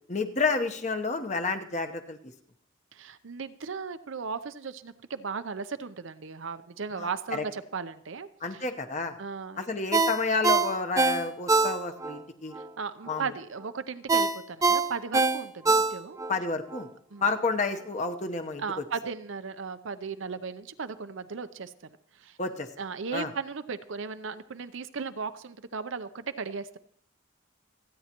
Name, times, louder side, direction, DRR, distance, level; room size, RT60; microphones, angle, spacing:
voice 1, 0.1-2.2 7.0-7.4 8.4-9.1 9.6-12.5 13.1-13.2 16.3-16.9 17.2-18.6 22.4-22.7 23.1-23.3, left 3 dB, 35° left, 6 dB, 0.9 m, -30 dB
voice 2, 2.9-8.6 9.2-9.7 12.6-16.2 17.1-17.2 18.6-22.4 22.8-26.8, right 5 dB, 65° right, 11 dB, 0.6 m, -36 dB
Ringtone, 9.9-12.2 12.6-12.7 14.1-16.3 16.7-16.8, right 3 dB, 15° right, 0.5 m, -24 dB
27.5 x 9.6 x 3.0 m, 0.65 s
head